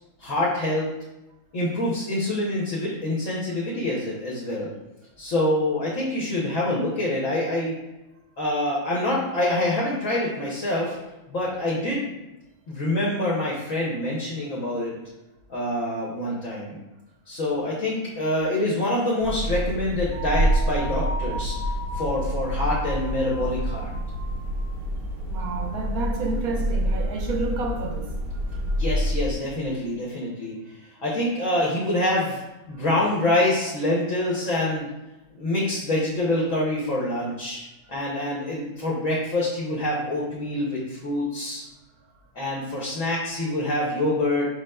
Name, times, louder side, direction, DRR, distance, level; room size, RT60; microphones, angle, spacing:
voice 1, 0.2-0.9 1.5-4.7 5.2-7.8 8.4-11.0 11.3-12.0 12.7-14.9 15.5-16.8 17.3-21.6 21.9-23.9 28.7-30.5 31.0-32.4 32.7-34.9 35.3-37.6 37.9-41.6 42.3-44.5, left 1 dB, 55° left, -6 dB, 1.2 m, -26 dB
sound 1, 19.2-29.3, equal, 85° right, 1.4 m, -27 dB
sound 2, 20.1-24.7, left 1 dB, 35° left, 0.6 m, -37 dB
voice 2, 25.3-28.1, right 3 dB, 70° right, 2 dB, 1.1 m, -30 dB
5.0 x 4.5 x 2.2 m, 0.99 s
omnidirectional pair, 1.7 m